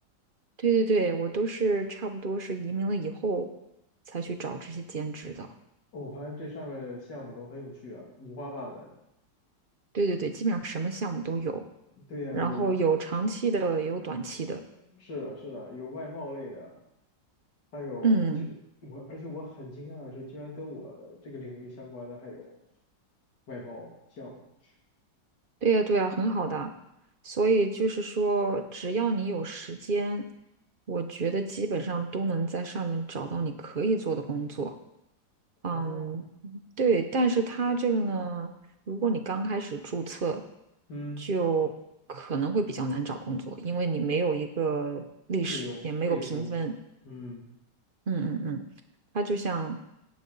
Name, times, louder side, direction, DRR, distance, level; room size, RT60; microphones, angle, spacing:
voice 1, 0.6-3.5 4.1-5.5 9.9-11.6 12.3-14.6 18.0-18.5 25.6-26.7 27.2-30.3 30.9-34.7 35.6-38.5 38.9-40.4 41.2-41.7 42.1-46.7 48.1-48.6 49.1-49.8, right 4 dB, 45° right, 7 dB, 0.7 m, -28 dB
voice 2, 5.9-8.9 12.0-12.7 14.6-16.8 17.7-18.5 18.8-22.6 23.5-24.4 35.6-36.2 40.9-41.2 45.5-46.5 47.0-47.5, left 1 dB, 65° left, -3 dB, 3.3 m, -40 dB
17.5 x 8.6 x 4.0 m, 0.83 s
omnidirectional pair, 2.0 m